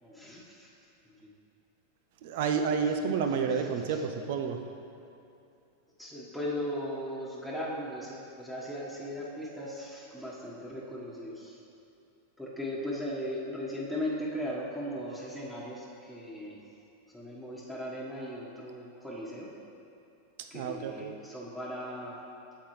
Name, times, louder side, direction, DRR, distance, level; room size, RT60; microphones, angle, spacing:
voice 1, 0.0-0.7 1.0-1.3 3.5-4.0 6.0-11.6 12.4-16.6 17.1-19.5 20.5-22.1, equal, ahead, -7 dB, 1.4 m, -38 dB
voice 2, 2.2-4.6 20.5-21.1, right 6 dB, 60° right, 6 dB, 0.6 m, -30 dB
8.5 x 7.2 x 3.3 m, 2.7 s
hypercardioid pair, 100°, 0 cm